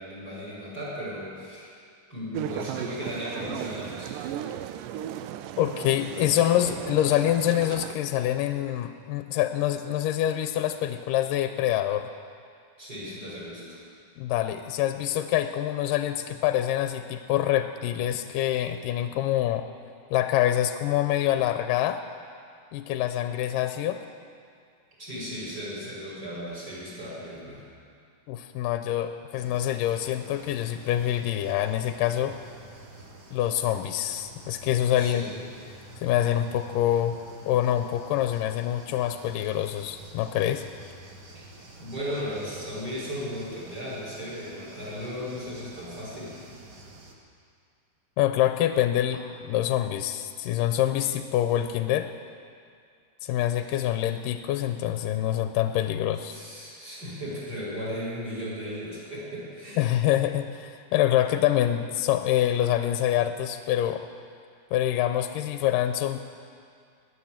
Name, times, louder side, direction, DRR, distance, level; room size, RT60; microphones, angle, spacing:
voice 1, 0.0-1.7 2.1-4.1 12.8-13.8 25.0-27.7 34.9-35.3 41.3-41.4 41.8-46.4 55.9-59.8, equal, 25° right, -7 dB, 5.8 m, -36 dB
sound 1, 2.3-8.0, right 11 dB, 80° right, 2.1 m, -36 dB
voice 2, 5.6-12.1 14.2-19.7 20.1-22.0 22.7-24.0 28.3-32.4 33.3-35.3 36.0-40.6 48.2-52.1 53.2-56.4 59.8-64.1 64.7-66.2, left 12 dB, 80° left, 8 dB, 2.2 m, -26 dB
sound 2, 29.4-47.1, right 2 dB, 55° right, 1.1 m, -48 dB
19.0 x 10.0 x 7.3 m, 2.3 s
omnidirectional pair, 4.0 m